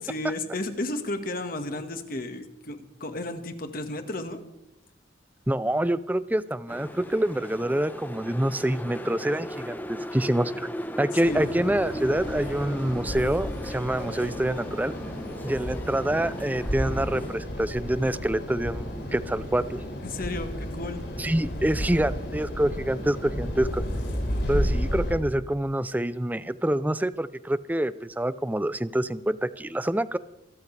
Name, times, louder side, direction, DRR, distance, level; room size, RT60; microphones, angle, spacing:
voice 1, 0.0-4.4 11.2-11.5 20.0-21.0, left 2 dB, 50° left, 7 dB, 1.6 m, -33 dB
voice 2, 5.5-10.7 11.0-14.9 15.4-19.8 21.2-23.8 24.5-30.2, right 1 dB, 10° right, 15 dB, 0.4 m, -26 dB
sound 1, 6.7-17.4, equal, 10° left, 0.8 m, -37 dB
sound 2, 11.2-25.1, equal, 65° left, 5.8 m, -32 dB
26.5 x 13.5 x 3.3 m, 0.88 s
head